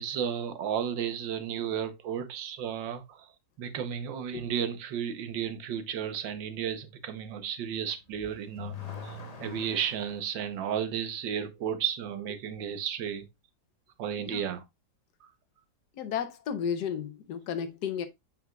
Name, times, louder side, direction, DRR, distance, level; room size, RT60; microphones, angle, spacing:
voice 1, 0.0-3.3 3.6-8.8 9.0-13.3 14.0-14.6, right 8 dB, 85° right, 1.6 m, -33 dB
Car / Accelerating revving vroom, 8.0-10.3, left 6 dB, 30° left, 0.9 m, -42 dB
voice 2, 15.9-18.1, left 8 dB, 70° left, 1.3 m, -33 dB
7.3 x 6.0 x 2.3 m
omnidirectional pair, 2.0 m